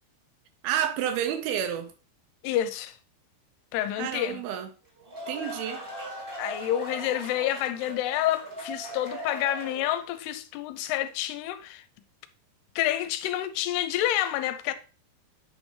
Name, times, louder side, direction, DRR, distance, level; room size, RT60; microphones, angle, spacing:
voice 1, 0.6-1.9 4.0-4.7 5.3-5.8, right 9 dB, 80° right, 2.4 m, -29 dB
voice 2, 2.4-3.0 3.7-4.4 6.4-11.8 12.8-14.7, left 12 dB, 85° left, 2.6 m, -28 dB
sound 1, 4.8-10.2, right 1 dB, 25° right, 1.3 m, -39 dB
8.8 x 5.3 x 3.2 m
omnidirectional pair, 4.7 m